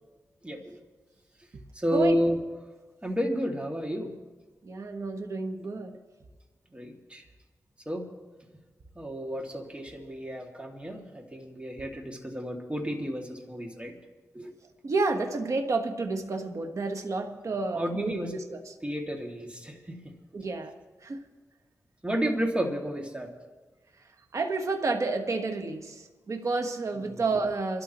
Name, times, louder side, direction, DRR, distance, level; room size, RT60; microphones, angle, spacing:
voice 1, 0.4-0.8 1.7-2.4 3.0-4.1 6.7-7.2 7.9-8.1 8.9-14.0 14.3-14.5 17.7-18.3 18.8-20.1 22.0-23.3 27.0-27.2, equal, 20° right, 1 dB, 2.5 m, -31 dB
voice 2, 4.6-6.0 14.8-18.6 20.3-20.7 21.0-21.2 24.3-27.8, right 3 dB, 60° right, 5 dB, 1.4 m, -30 dB
26.0 x 12.5 x 3.1 m, 1.3 s
cardioid pair, 65°, 6 cm